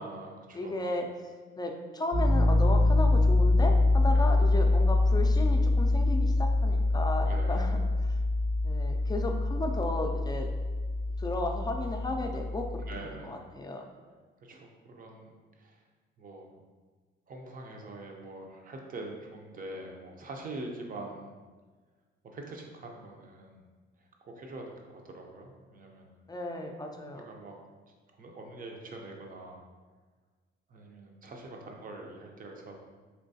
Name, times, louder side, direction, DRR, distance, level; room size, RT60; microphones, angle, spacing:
voice 1, 0.0-0.8 4.1-4.4 7.2-7.7 12.9-13.5 14.4-15.8 16.2-16.5 17.3-21.4 22.2-23.7 24.3-26.1 27.1-27.6 28.2-29.7 30.7-32.7, right 2 dB, 45° right, 1 dB, 0.7 m, -44 dB
voice 2, 0.5-7.8 8.1-8.2 8.6-10.5 11.2-13.9 26.3-27.3, left 2 dB, 20° left, 3 dB, 0.4 m, -34 dB
Piano, 2.1-12.9, left 2 dB, 80° right, 1.4 m, -25 dB
4.4 x 3.0 x 2.7 m, 1.4 s
cardioid pair, 90°, 20 cm